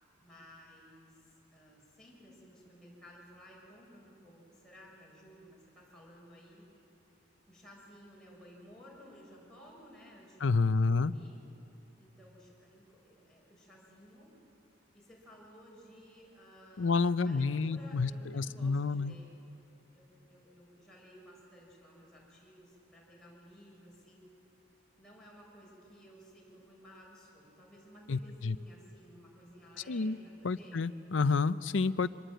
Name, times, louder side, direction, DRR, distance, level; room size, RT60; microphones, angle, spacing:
voice 1, 0.2-6.6 7.5-11.4 12.0-14.3 14.9-19.3 19.9-24.3 25.0-30.8, equal, 5° left, -5 dB, 6.6 m, -56 dB
voice 2, 10.4-11.1 16.8-19.1 28.1-28.6 29.9-30.2 30.4-32.1, left 4 dB, 80° left, 14 dB, 0.6 m, -29 dB
25.5 x 20.5 x 9.0 m, 2.9 s
head